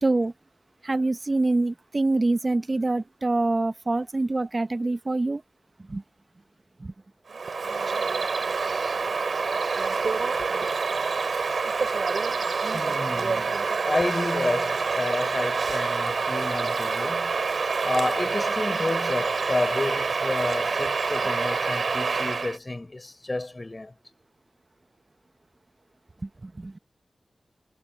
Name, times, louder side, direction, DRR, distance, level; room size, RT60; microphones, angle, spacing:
voice 1, 0.0-0.3 0.8-5.4 5.8-6.0 6.8-6.9 26.2-26.8, right 2 dB, 45° right, 0.9 m, -25 dB
Bird vocalization bird call bird song, 7.3-22.6, right 4 dB, 80° right, 2.7 m, -27 dB
voice 2, 10.4-10.7 12.7-17.4 17.8-23.9, left 2 dB, 40° left, 4.5 m, -30 dB
cardioid pair, 40°, 0 cm